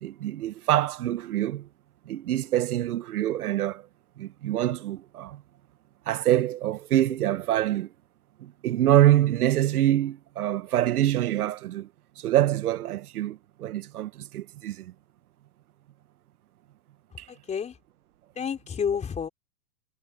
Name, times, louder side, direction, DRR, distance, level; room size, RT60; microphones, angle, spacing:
voice 1, 0.0-1.7 2.1-3.8 4.2-5.4 6.1-7.9 8.4-11.9 12.2-14.9 17.2-17.3, right 13 dB, 80° right, 1.4 m, -25 dB
voice 2, 17.3-17.8 18.3-19.3, left 7 dB, 15° left, 4.6 m, -30 dB
supercardioid pair, 145°, 44 cm